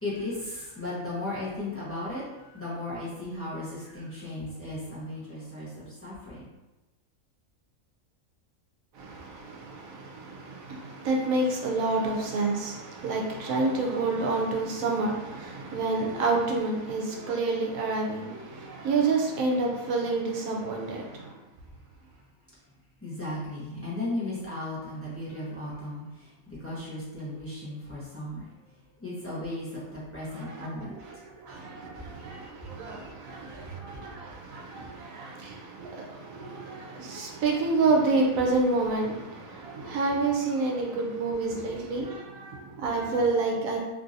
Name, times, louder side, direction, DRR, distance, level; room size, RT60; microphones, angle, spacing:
voice 1, 0.0-6.5 23.0-31.0 32.2-32.7 33.0-33.9, left 1 dB, 10° left, -9 dB, 0.7 m, -36 dB
voice 2, 9.0-21.3 30.4-43.8, right 3 dB, 75° right, 0 dB, 1.0 m, -29 dB
3.0 x 2.7 x 2.5 m, 1.0 s
omnidirectional pair, 1.4 m